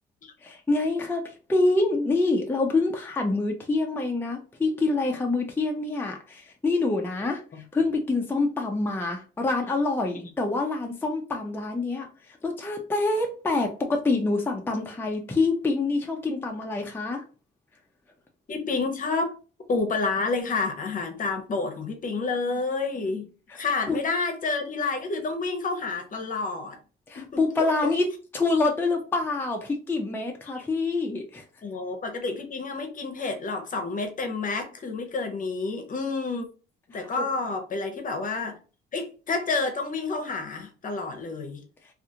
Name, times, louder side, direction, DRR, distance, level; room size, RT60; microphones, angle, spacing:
voice 1, 0.4-17.2 23.5-23.6 23.9-24.0 27.1-28.1 28.3-31.4 36.9-37.3, left 3 dB, 10° left, 0.4 m, -26 dB
voice 2, 18.5-19.3 19.7-23.3 23.6-26.8 27.2-27.9 31.6-36.5 36.9-38.6 38.9-41.6, left 3 dB, 40° left, 0.7 m, -29 dB
2.4 x 2.3 x 2.7 m
cardioid pair, 90°, 20 cm